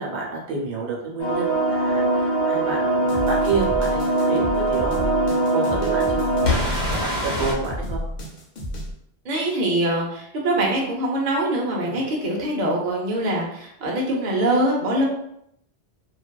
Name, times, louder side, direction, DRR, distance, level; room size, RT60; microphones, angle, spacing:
voice 1, 0.0-8.0 11.8-12.1, right 4 dB, 80° right, -2 dB, 1.0 m, -30 dB
sound 1, 1.2-7.5, right 2 dB, 75° left, 1.2 m, -22 dB
sound 2, 3.1-8.9, equal, 60° left, 0.8 m, -31 dB
voice 2, 9.2-15.0, right 1 dB, 50° right, -2 dB, 0.7 m, -23 dB
2.6 x 2.2 x 2.2 m, 0.73 s
omnidirectional pair, 1.1 m